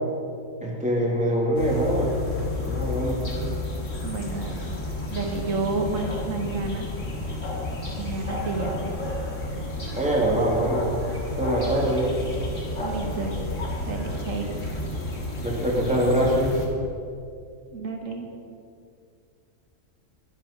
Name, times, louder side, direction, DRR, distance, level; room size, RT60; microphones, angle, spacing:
voice 1, 0.6-2.1 2.6-3.2 9.9-10.9 11.4-12.1 15.4-16.6, right 1 dB, 5° right, -3 dB, 1.9 m, -23 dB
sound 1, 1.5-16.7, left 2 dB, 70° left, 2.3 m, -31 dB
voice 2, 4.0-4.7 5.1-6.9 8.0-8.9 12.8-13.5 13.9-14.5 17.7-18.3, right 3 dB, 80° right, 3 dB, 1.5 m, -30 dB
11.0 x 9.8 x 5.0 m, 2.4 s
omnidirectional pair, 1.3 m